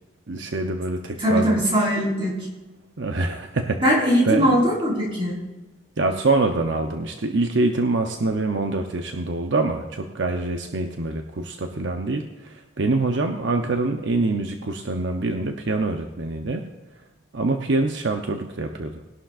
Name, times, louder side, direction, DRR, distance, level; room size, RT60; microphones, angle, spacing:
voice 1, 0.3-1.6 3.0-4.0 4.2-4.5 6.0-16.7 17.3-19.0, right 3 dB, 65° right, 4 dB, 0.8 m, -25 dB
voice 2, 1.2-2.3 3.8-5.4, equal, 25° right, -3 dB, 4.1 m, -20 dB
19.5 x 11.5 x 2.5 m, 1.1 s
head